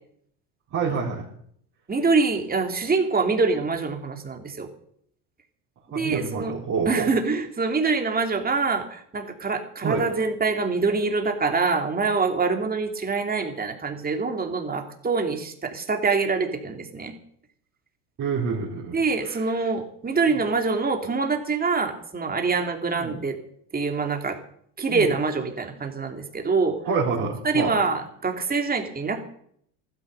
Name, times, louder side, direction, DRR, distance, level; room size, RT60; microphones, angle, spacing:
voice 1, 0.7-1.2 5.9-7.1 9.8-10.1 18.2-19.4 22.9-23.2 24.9-25.1 26.8-27.8, right 5 dB, 40° right, -7 dB, 4.4 m, -27 dB
voice 2, 1.9-4.7 5.9-6.5 6.8-17.2 18.9-23.4 23.7-24.4 24.8-26.8 27.4-29.2, right 4 dB, 20° right, 4 dB, 2.7 m, -25 dB
14.5 x 13.0 x 6.7 m, 0.67 s
supercardioid pair, 110°, 45 cm